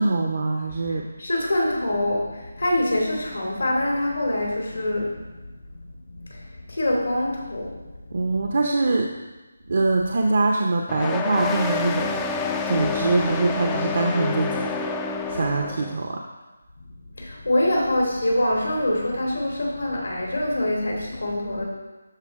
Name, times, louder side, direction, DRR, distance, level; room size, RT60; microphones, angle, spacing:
voice 1, 0.0-1.1 8.1-9.1 9.7-12.2 12.7-14.7 15.3-16.2, right 3 dB, 55° right, 2 dB, 0.7 m, -23 dB
voice 2, 1.2-5.2 6.1-7.8 8.1-8.2 17.2-21.7, left 1 dB, 80° left, -2 dB, 2.7 m, -25 dB
sound 1, 10.9-16.0, left 4 dB, 15° left, 0.4 m, -28 dB
12.5 x 4.3 x 3.6 m, 1.1 s
figure-of-eight pair, 160°, 0 cm